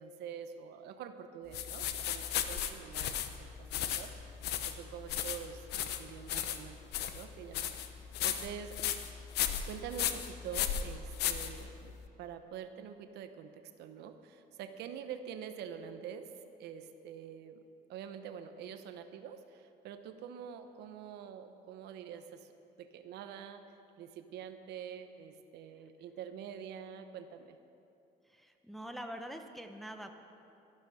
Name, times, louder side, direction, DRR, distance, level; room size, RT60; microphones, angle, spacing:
voice 1, 0.0-4.1 4.6-8.8 9.6-16.3 16.6-17.6 17.9-22.5 22.8-23.6 24.0-27.6, right 8 dB, 80° right, 8 dB, 0.9 m, -46 dB
sound 1, 1.5-12.0, left 10 dB, 75° left, 0.9 m, -35 dB
voice 2, 28.2-30.1, equal, ahead, 4 dB, 1.0 m, -45 dB
13.0 x 12.0 x 6.3 m, 2.7 s
cardioid pair, 110°, 17 cm